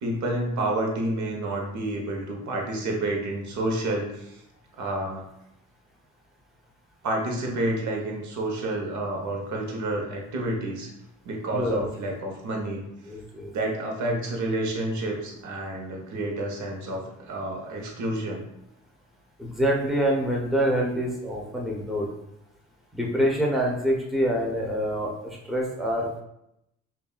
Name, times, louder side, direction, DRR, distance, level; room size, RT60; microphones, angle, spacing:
voice 1, 0.0-4.4 4.8-5.2 7.0-10.9 11.2-12.8 13.5-18.4, right 1 dB, 70° right, 0 dB, 1.0 m, -29 dB
voice 2, 11.5-11.9 13.1-13.5 19.4-22.1 22.9-26.2, equal, ahead, -2 dB, 0.9 m, -26 dB
5.5 x 2.6 x 2.4 m, 0.81 s
cardioid pair, 90°, 30 cm